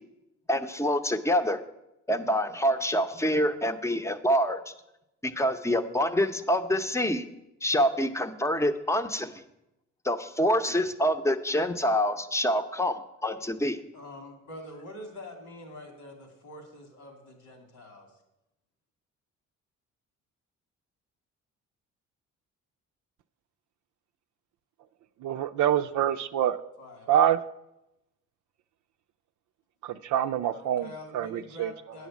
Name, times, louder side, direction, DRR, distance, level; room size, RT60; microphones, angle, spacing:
voice 1, 0.5-1.6 2.1-4.7 5.2-7.2 7.6-9.4 10.0-13.8, equal, 10° left, 9 dB, 0.7 m, -26 dB
voice 2, 13.9-18.1 26.8-27.1 30.4-32.1, left 1 dB, 85° left, 4 dB, 2.5 m, -45 dB
voice 3, 25.2-26.6 27.1-27.4 29.8-30.9 31.1-31.7, right 10 dB, 75° right, 8 dB, 0.5 m, -25 dB
9.1 x 6.4 x 7.2 m, 0.89 s
cardioid pair, 90°, 30 cm